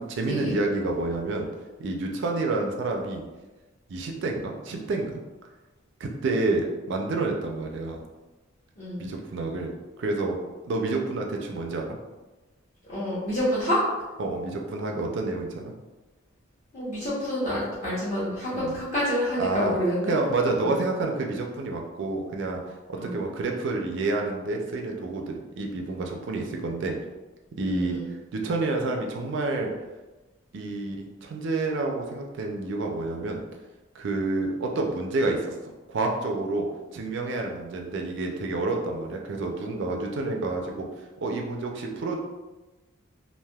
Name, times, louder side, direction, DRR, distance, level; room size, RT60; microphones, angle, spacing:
voice 1, 0.0-1.5 1.8-3.3 3.9-5.2 6.0-8.0 9.0-9.7 10.0-10.4 10.6-12.0 14.2-15.7 18.5-18.8 19.4-19.8 20.1-22.6 22.9-27.0 27.6-28.0 28.3-29.7 30.5-33.4 33.9-35.4 35.9-36.7 36.9-40.9 41.2-42.2, right 2 dB, 60° right, 1 dB, 0.4 m, -29 dB
voice 2, 12.8-13.8 16.7-20.1 20.6-20.7 23.0-23.1 27.7-28.1, equal, 35° left, -11 dB, 0.8 m, -28 dB
3.3 x 2.5 x 2.2 m, 1.2 s
head